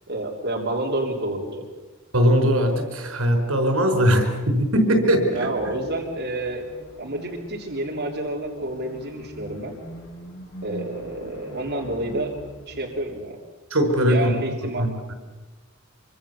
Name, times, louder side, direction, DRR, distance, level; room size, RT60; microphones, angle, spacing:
voice 1, 0.1-1.6 5.3-6.7 7.0-9.7 10.6-12.4 12.7-13.4 14.1-15.1, right 1 dB, 55° right, -2 dB, 3.3 m, -29 dB
voice 2, 2.1-5.5 13.7-14.4 14.8-14.9, equal, 85° right, 5 dB, 5.0 m, -20 dB
sound 1, 5.5-13.2, equal, 55° left, 5.9 m, -42 dB
25.5 x 25.0 x 7.0 m, 1.3 s
head